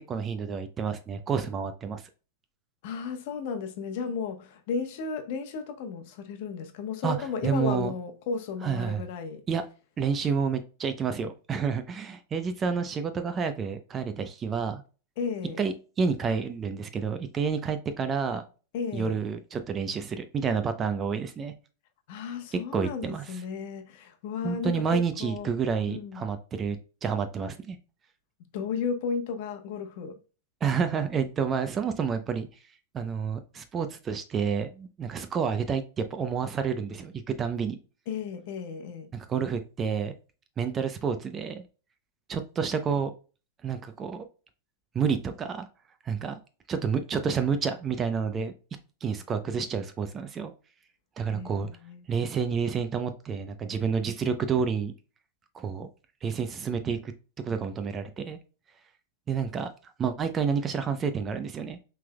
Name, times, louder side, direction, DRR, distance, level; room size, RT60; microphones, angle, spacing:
voice 1, 0.0-2.0 7.0-7.2 7.4-7.9 8.6-9.0 9.5-9.6 10.0-14.8 15.6-18.4 18.9-21.5 22.5-23.4 24.4-27.8 30.6-32.5 32.9-37.1 37.4-37.8 39.1-40.1 40.6-41.6 42.3-43.1 43.6-44.3 44.9-45.7 46.1-46.4 46.7-48.5 49.0-50.5 51.2-51.7 52.1-54.9 55.5-55.9 56.2-57.1 57.4-58.4 59.3-59.7 60.0-61.8, right 6 dB, 25° right, 0.6 m, -29 dB
voice 2, 2.8-9.4 15.2-15.6 18.7-19.2 22.1-24.7 25.2-25.5 25.9-26.2 28.5-30.2 38.1-39.1 51.3-52.0, left 5 dB, 60° left, 1.0 m, -34 dB
5.8 x 3.4 x 2.2 m
hypercardioid pair, 130°, 0 cm